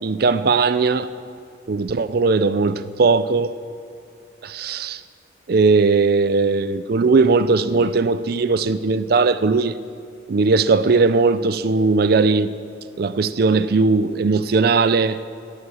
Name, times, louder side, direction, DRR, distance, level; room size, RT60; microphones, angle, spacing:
voice 1, 0.0-1.1 1.7-3.5 4.4-5.0 5.5-9.8 10.3-12.5 13.0-15.2, right 4 dB, 55° right, 14 dB, 0.4 m, -18 dB
18.0 x 9.7 x 7.1 m, 2.4 s
head